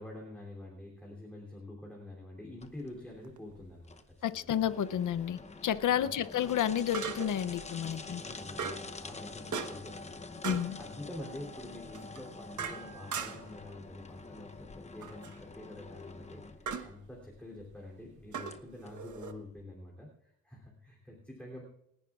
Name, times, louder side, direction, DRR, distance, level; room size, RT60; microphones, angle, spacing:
voice 1, 0.0-3.9 4.3-4.5 5.9-6.1 8.1-10.3 10.6-21.6, left 1 dB, 5° left, -3 dB, 3.1 m, -47 dB
sound 1, 2.6-19.6, left 3 dB, 20° left, 0.8 m, -47 dB
sound 2, 3.2-3.4 6.9-7.5 8.6-8.9 9.5-10.0 10.4-10.7 11.9-13.6 15.0-15.4 16.7-16.9 18.3-19.3, right 6 dB, 70° right, 1.3 m, -39 dB
voice 2, 4.2-8.2 10.4-10.8, left 10 dB, 85° left, 13 dB, 0.7 m, -31 dB
29.0 x 11.0 x 2.5 m, 0.76 s
wide cardioid pair, 155°, 31 cm